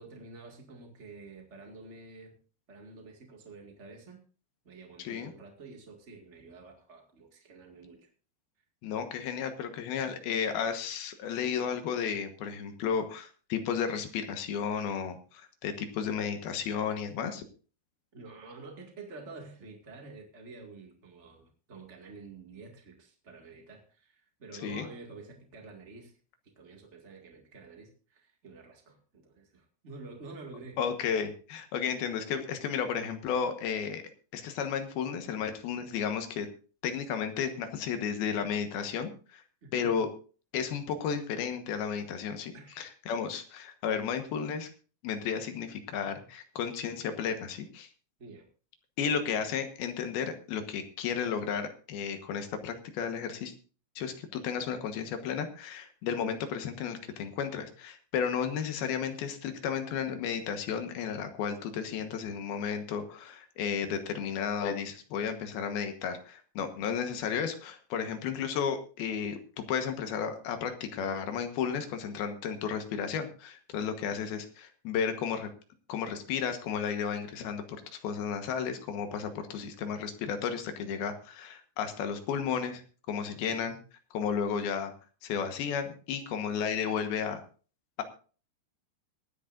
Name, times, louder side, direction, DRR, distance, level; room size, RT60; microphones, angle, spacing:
voice 1, 0.0-2.4 2.7-4.2 4.6-8.1 18.1-26.1 26.5-30.8 39.6-40.0 42.5-42.8 48.2-48.5 67.9-68.3 74.0-74.4 83.3-83.8, right 3 dB, 80° right, 2 dB, 0.6 m, -49 dB
voice 2, 5.0-5.3 8.8-17.4 24.6-24.9 30.8-34.0 34.3-36.5 36.8-39.4 39.7-40.1 40.5-44.7 45.0-47.9 49.0-53.5 54.0-75.5 75.9-77.6 77.9-82.8 83.1-83.8 84.1-84.9 85.2-87.4, left 7 dB, 70° left, 7 dB, 2.9 m, -33 dB
24.0 x 9.6 x 2.6 m, 0.38 s
omnidirectional pair, 5.1 m